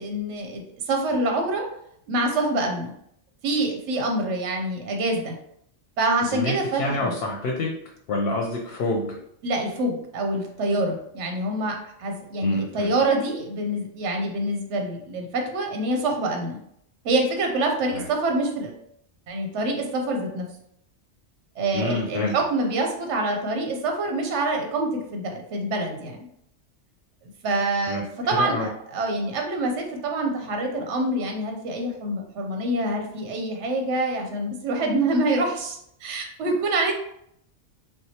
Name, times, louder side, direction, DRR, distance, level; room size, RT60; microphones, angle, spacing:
voice 1, 0.0-1.7 2.1-2.9 3.4-5.3 6.0-7.1 9.4-16.6 17.0-18.8 19.3-20.5 21.6-26.3 27.4-36.9, right 2 dB, 80° right, 3 dB, 0.9 m, -26 dB
voice 2, 6.3-7.7 8.1-9.2 12.4-12.9 17.9-18.0 21.7-22.3 27.9-28.0 28.3-28.7, left 2 dB, 65° left, 0 dB, 0.7 m, -27 dB
4.5 x 2.0 x 2.7 m, 0.73 s
omnidirectional pair, 1.2 m